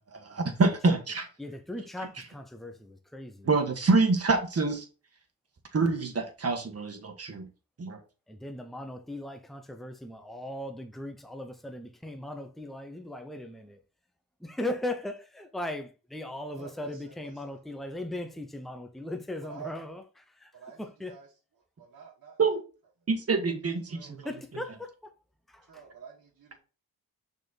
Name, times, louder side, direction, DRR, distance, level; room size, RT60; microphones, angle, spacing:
voice 1, 0.1-1.3 3.4-4.9 5.7-7.5 7.8-8.0 22.4-22.6 23.1-24.3, right 3 dB, 40° right, 1.6 m, -26 dB
voice 2, 1.4-3.5 8.3-13.8 14.4-20.5 20.8-21.2 24.2-24.9 25.5-25.8, left 1 dB, ahead, 0.8 m, -38 dB
voice 3, 16.5-17.1 17.5-17.6 19.5-19.7 20.5-20.8 21.1-21.3 21.8-22.4 23.4-23.5 23.9-24.1 25.7-26.6, right 6 dB, 60° right, 1.7 m, -48 dB
6.2 x 4.3 x 4.1 m
cardioid pair, 85°, 36 cm